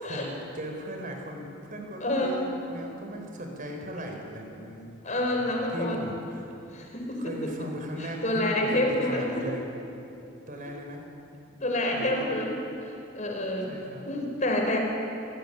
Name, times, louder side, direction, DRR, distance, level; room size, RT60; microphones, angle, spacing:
voice 1, 0.0-5.0 5.4-6.5 7.2-9.7 10.5-11.0 11.9-12.3 13.7-14.1, equal, 45° right, 2 dB, 4.2 m, -38 dB
voice 2, 2.0-2.4 5.0-6.0 6.7-7.2 8.2-9.4 11.6-12.6 12.8-13.7 14.1-14.8, left 1 dB, 40° left, 1 dB, 4.9 m, -28 dB
29.0 x 16.5 x 10.0 m, 2.8 s
head